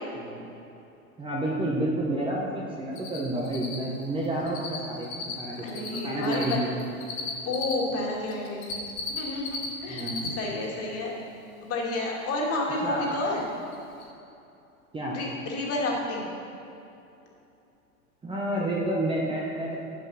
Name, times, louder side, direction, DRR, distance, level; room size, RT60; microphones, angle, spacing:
voice 1, 0.2-0.5 1.2-6.7 9.9-10.3 12.8-13.2 14.9-15.2 18.2-19.8, right 1 dB, 10° right, -4 dB, 1.0 m, -30 dB
Cricket, 3.0-3.2 3.4-7.7 8.3-9.7 9.9-10.3 10.6-10.7 13.2-13.3 13.7-13.8 14.0-14.1, left 5 dB, 60° left, 2.3 m, -34 dB
voice 2, 5.6-6.6 7.5-8.8 9.1-10.1 10.4-11.1 11.7-13.5 15.1-16.3, left 2 dB, 30° left, -2 dB, 2.2 m, -30 dB
7.7 x 7.4 x 5.6 m, 2.8 s
hypercardioid pair, 110°, 45 cm